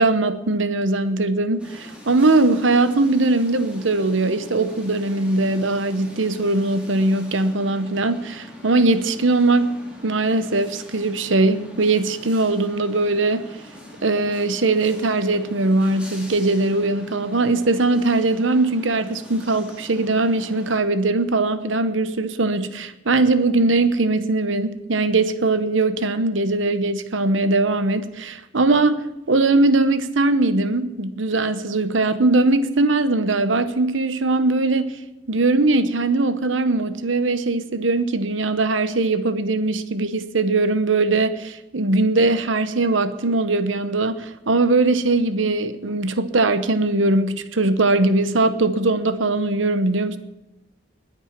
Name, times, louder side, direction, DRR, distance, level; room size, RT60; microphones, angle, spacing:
voice 1, 0.0-9.7 10.0-13.5 14.0-35.0 35.3-50.2, right 2 dB, 85° right, 12 dB, 1.0 m, -20 dB
sound 1, 1.6-20.8, left 1 dB, 5° right, 3.3 m, -42 dB
20.5 x 9.0 x 6.0 m, 0.94 s
head